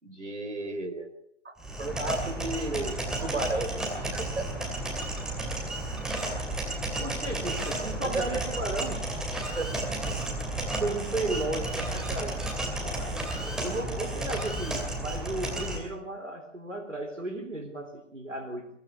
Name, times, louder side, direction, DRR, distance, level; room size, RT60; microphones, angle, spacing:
voice 1, 0.0-1.1 1.4-2.8 3.2-3.7 4.0-4.7 8.0-8.4 9.6-9.9, right 2 dB, 70° right, 7 dB, 4.2 m, -34 dB
sound 1, 1.6-15.8, right 1 dB, ahead, 2.5 m, -32 dB
voice 2, 7.0-9.0 10.8-12.4 12.8-18.7, right 2 dB, 85° right, 5 dB, 3.8 m, -34 dB
22.5 x 15.0 x 8.3 m, 0.68 s
figure-of-eight pair, 140°, 37 cm